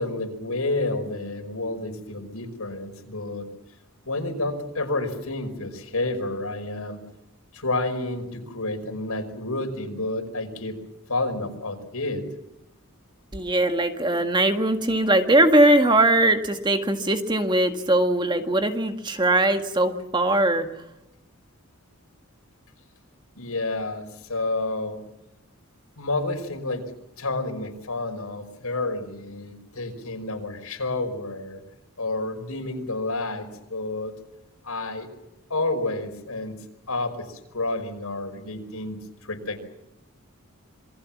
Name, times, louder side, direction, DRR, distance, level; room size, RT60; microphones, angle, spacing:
voice 1, 0.0-3.4 4.1-7.0 7.5-10.8 11.1-12.2 23.4-25.0 26.0-26.8 27.2-31.6 32.0-34.2 34.6-35.1 35.5-36.6 36.9-39.6, left 2 dB, 90° left, 5 dB, 5.4 m, -30 dB
voice 2, 13.3-20.7, right 1 dB, 20° right, 6 dB, 1.8 m, -20 dB
27.0 x 22.0 x 7.4 m, 0.93 s
head